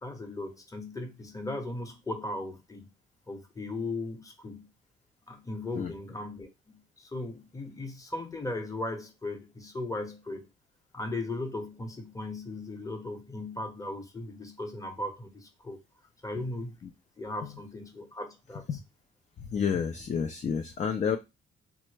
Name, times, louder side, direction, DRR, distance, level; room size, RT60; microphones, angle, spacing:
voice 1, 0.0-2.9 3.3-4.7 5.3-10.5 10.9-15.8 16.2-16.8 17.2-18.6, left 2 dB, 15° left, 0.8 m, -37 dB
voice 2, 19.5-21.2, left 7 dB, 35° left, 0.4 m, -29 dB
3.4 x 2.0 x 3.2 m
cardioid pair, 90°, 20 cm